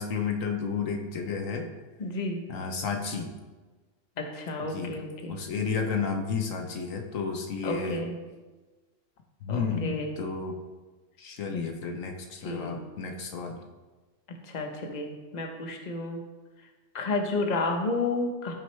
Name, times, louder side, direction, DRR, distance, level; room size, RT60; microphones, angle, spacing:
voice 1, 0.0-1.7 2.5-3.3 4.6-5.0 5.3-8.0 9.4-10.6 11.2-13.6, left 5 dB, 75° left, 3 dB, 1.3 m, -32 dB
voice 2, 2.0-2.4 4.2-5.4 7.6-8.1 9.5-10.1 11.5-11.7 12.4-12.7 14.4-16.2 16.9-18.5, left 2 dB, 35° left, 2 dB, 1.1 m, -31 dB
14.0 x 6.4 x 3.3 m, 1.3 s
omnidirectional pair, 1.4 m